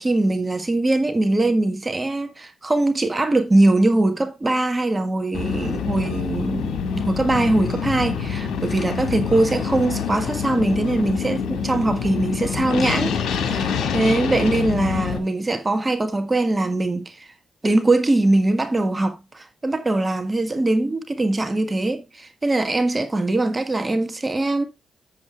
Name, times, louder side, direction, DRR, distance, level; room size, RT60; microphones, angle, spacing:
voice 1, 0.0-17.3 17.6-24.7, right 2 dB, 25° right, 1.5 m, -22 dB
sound 1, 5.3-15.2, left 6 dB, 75° left, 1.6 m, -26 dB
7.6 x 7.6 x 3.4 m
supercardioid pair, 55°, 0 cm